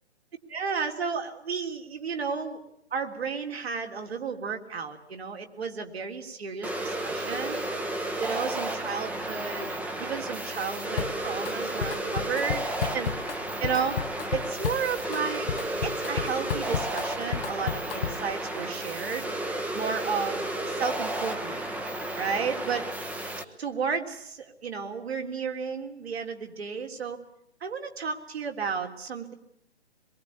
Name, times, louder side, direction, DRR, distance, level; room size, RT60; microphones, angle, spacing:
voice 1, 0.5-2.6 2.9-7.6 8.2-9.7 10.0-14.0 14.3-15.5 15.8-19.3 19.7-21.6 22.2-22.8 23.6-27.2 27.6-29.3, right 6 dB, 65° right, 4 dB, 3.6 m, -33 dB
sound 1, 6.6-23.4, right 1 dB, 5° right, 1.0 m, -33 dB
Drum kit, 11.0-11.5 11.8-18.3, left 8 dB, 55° left, 0.9 m, -33 dB
23.5 x 22.5 x 8.5 m, 0.71 s
figure-of-eight pair, 140°, 34 cm